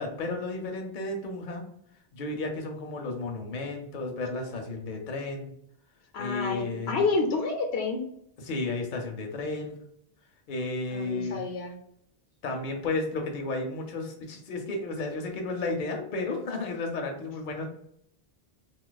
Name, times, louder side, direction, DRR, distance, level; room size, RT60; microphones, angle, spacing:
voice 1, 0.0-1.6 2.1-5.5 6.2-7.0 8.4-9.8 10.5-11.4 12.4-17.6, left 3 dB, 55° left, 3 dB, 0.7 m, -33 dB
voice 2, 6.1-8.0 10.9-11.7, left 3 dB, 80° left, 3 dB, 0.9 m, -29 dB
2.7 x 2.4 x 3.8 m, 0.72 s
omnidirectional pair, 1.1 m